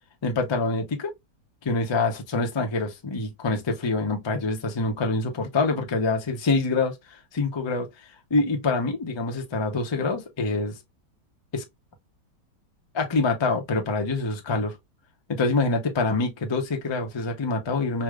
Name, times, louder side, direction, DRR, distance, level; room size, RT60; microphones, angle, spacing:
voice 1, 0.2-1.1 1.6-6.9 7.3-7.9 8.3-10.8 11.5-11.6 12.9-14.7 15.3-18.0, left 3 dB, 40° left, 0.3 m, -25 dB
4.7 x 2.8 x 2.4 m
omnidirectional pair, 1.8 m